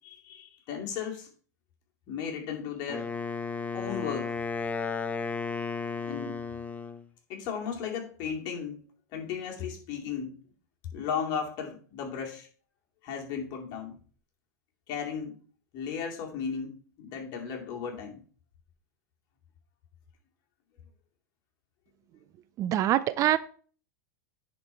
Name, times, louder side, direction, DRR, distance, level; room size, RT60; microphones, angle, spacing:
voice 1, 0.0-1.3 2.1-3.1 3.7-4.3 6.0-6.4 7.3-8.8 9.1-10.4 10.9-12.5 13.0-14.0 14.9-15.4 15.7-18.2, left 7 dB, 50° left, 0 dB, 2.6 m, -35 dB
Wind instrument woodwind instrument, 2.9-7.1, left 5 dB, 15° left, 0.6 m, -34 dB
voice 2, 22.6-23.4, right 12 dB, 35° right, 15 dB, 0.5 m, -24 dB
9.8 x 4.1 x 4.5 m, 0.43 s
hypercardioid pair, 115°, 9 cm